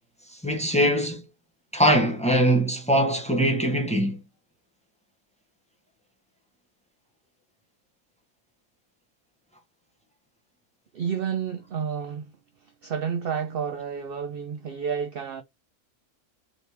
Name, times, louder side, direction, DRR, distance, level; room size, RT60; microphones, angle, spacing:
voice 1, 0.4-1.2 1.7-4.2, right 1 dB, 5° left, 0.6 m, -22 dB
voice 2, 10.9-12.3 12.6-15.4, right 7 dB, 65° right, 0.5 m, -30 dB
4.1 x 2.9 x 3.3 m
omnidirectional pair, 1.5 m